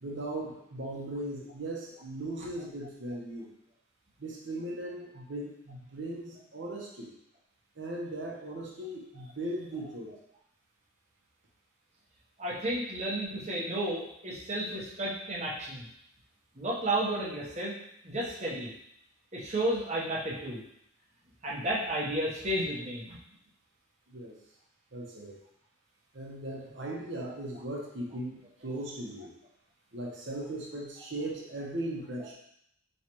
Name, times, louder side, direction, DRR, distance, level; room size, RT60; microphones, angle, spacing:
voice 1, 0.0-3.5 4.2-7.1 7.8-10.1 24.1-24.4 24.9-25.4 26.1-29.3 29.9-32.3, right 1 dB, 60° right, -2 dB, 0.9 m, -38 dB
voice 2, 12.4-15.9 16.5-17.7 18.0-18.7 19.3-20.6 21.4-23.2 32.2-32.3, right 1 dB, 35° right, -5 dB, 0.9 m, -32 dB
4.5 x 3.2 x 3.0 m, 0.75 s
head